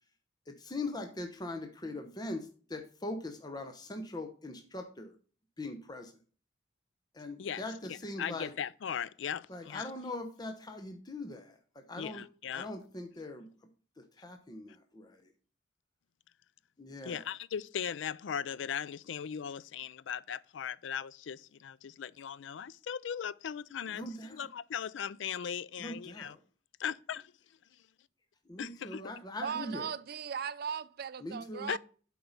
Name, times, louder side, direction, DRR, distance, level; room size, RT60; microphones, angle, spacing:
voice 1, 0.6-5.1 5.6-6.1 7.2-8.5 9.5-12.2 12.5-13.5 14.2-15.1 16.8-17.2 23.9-24.4 25.8-26.4 28.5-29.9 31.2-31.7, left 2 dB, 20° left, 0.9 m, -41 dB
voice 2, 7.4-9.9 12.0-12.7 17.0-26.4 26.8-27.2 28.6-29.0 31.7-31.8, left 8 dB, 85° left, 0.4 m, -38 dB
voice 3, 29.4-31.8, right 7 dB, 55° right, 0.5 m, -37 dB
7.8 x 4.7 x 5.4 m
head